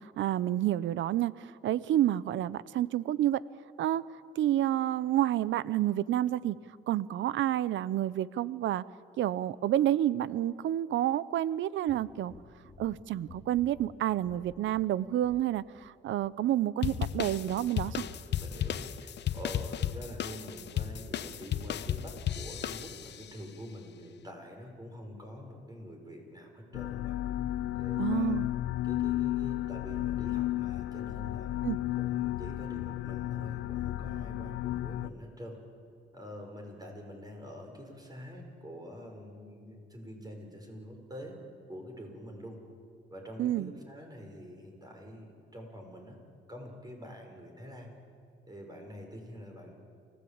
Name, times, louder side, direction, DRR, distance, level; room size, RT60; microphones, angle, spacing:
voice 1, 0.2-3.4 3.8-4.0 4.4-6.6 6.9-8.8 9.2-12.3 12.8-18.0 28.0-28.5 31.6-31.8 43.4-43.7, right 12 dB, 75° right, 19 dB, 0.7 m, -29 dB
sound 1, 11.9-15.9 16.2-16.3, left 4 dB, 35° left, 1.9 m, -54 dB
sound 2, 16.8-23.3, left 10 dB, 60° left, 0.9 m, -34 dB
voice 2, 18.4-27.1 27.7-28.4 28.8-35.6 36.1-41.4 41.7-42.6 43.1-46.2 46.5-47.9 48.5-49.7, equal, 20° right, 2 dB, 6.3 m, -46 dB
sound 3, 26.7-35.1, left 14 dB, 80° left, 0.5 m, -33 dB
29.0 x 15.5 x 8.8 m, 2.3 s
cardioid pair, 90°, 20 cm